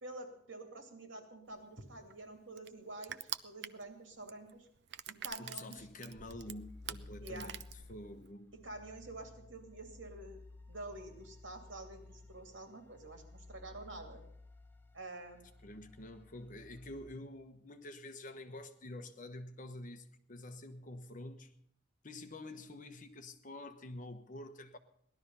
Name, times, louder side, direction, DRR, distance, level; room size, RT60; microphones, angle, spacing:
voice 1, 0.0-4.7 5.1-5.9 7.2-7.5 8.6-10.4 10.7-14.2 14.9-15.5, right 2 dB, 90° right, 2.7 m, -48 dB
Crushing, 1.5-8.3, right 11 dB, 60° right, 0.5 m, -46 dB
voice 2, 5.4-7.6 7.9-8.5 15.6-21.5 22.0-24.8, left 1 dB, 45° left, 1.2 m, -48 dB
sound 1, 5.8-17.2, left 2 dB, 10° left, 0.6 m, -55 dB
17.5 x 12.0 x 5.6 m
head